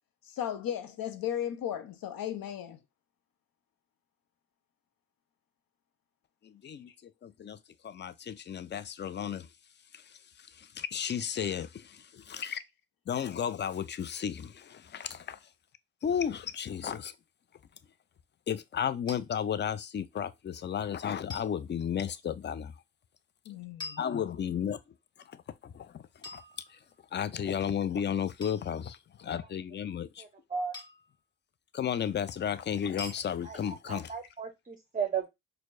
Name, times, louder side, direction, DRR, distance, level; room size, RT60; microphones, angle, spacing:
voice 1, 0.3-2.8 6.6-6.7 12.5-12.6 23.5-24.0, left 10 dB, 65° left, 0.7 m, -36 dB
voice 2, 6.4-6.9 7.2-7.6 7.8-9.5 10.6-12.6 13.1-15.4 16.0-17.1 18.5-22.7 24.0-24.8 25.6-26.0 26.3-26.4 27.1-30.2 31.7-34.1, left 8 dB, 30° left, 0.4 m, -33 dB
sound 1, 19.1-19.2 21.3-21.6 23.8-24.7 26.2-27.1 28.4-28.7 30.7-31.1 33.0-33.3, left 3 dB, 10° left, 1.7 m, -44 dB
voice 3, 30.2-30.8 33.4-35.3, right 6 dB, 20° right, 0.7 m, -35 dB
4.4 x 2.2 x 2.5 m
supercardioid pair, 50°, 37 cm